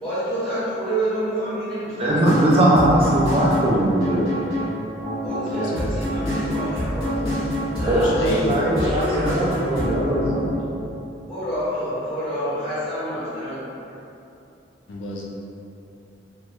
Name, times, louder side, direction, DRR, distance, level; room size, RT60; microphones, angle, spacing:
voice 1, 0.0-2.2 5.2-7.3 7.8-9.1 11.3-13.8, right 1 dB, 5° left, -15 dB, 1.3 m, -28 dB
voice 2, 2.0-4.3 7.9-8.1 8.4-10.5, right 1 dB, 30° right, -5 dB, 0.3 m, -20 dB
sound 1, 2.1-10.6, equal, 25° left, 1.4 m, -26 dB
voice 3, 5.5-6.3 7.8-8.6 14.9-15.2, equal, 70° left, -3 dB, 0.4 m, -29 dB
3.1 x 2.2 x 2.9 m, 2.7 s
head